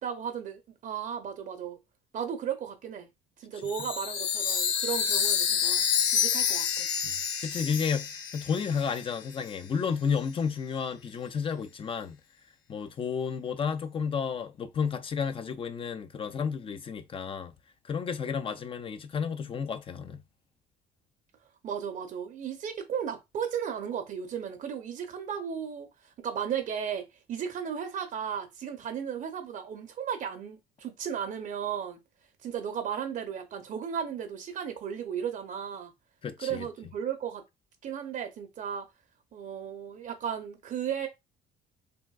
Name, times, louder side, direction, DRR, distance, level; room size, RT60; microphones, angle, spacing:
voice 1, 0.0-1.8 2.1-3.1 3.4-5.9 6.1-6.9 21.6-32.0 32.4-35.9 36.4-37.4 37.8-38.9 39.3-41.1, right 8 dB, 50° right, 0.6 m, -35 dB
Chime, 3.7-9.2, left 8 dB, 90° left, 0.6 m, -28 dB
voice 2, 7.4-12.2 12.7-17.5 17.9-20.2 36.2-36.6, left 6 dB, 30° left, 0.5 m, -32 dB
3.4 x 2.5 x 2.3 m
cardioid pair, 110°, 17 cm